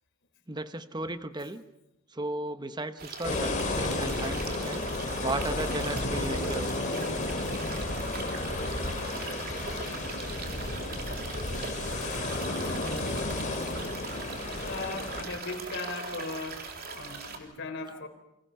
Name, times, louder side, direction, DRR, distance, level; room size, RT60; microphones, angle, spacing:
voice 1, 0.5-1.6 2.1-4.9 5.2-6.7 8.3-8.6 9.0-10.0 12.8-13.5 14.7-14.8, right 2 dB, 20° right, 10 dB, 1.2 m, -36 dB
sound 1, 3.0-17.4, right 4 dB, 45° right, 3.3 m, -40 dB
sound 2, 3.2-15.2, left 2 dB, 35° left, 3.3 m, -32 dB
voice 2, 14.6-18.1, left 3 dB, 60° left, 4 dB, 4.1 m, -38 dB
29.0 x 25.0 x 5.7 m, 0.89 s
head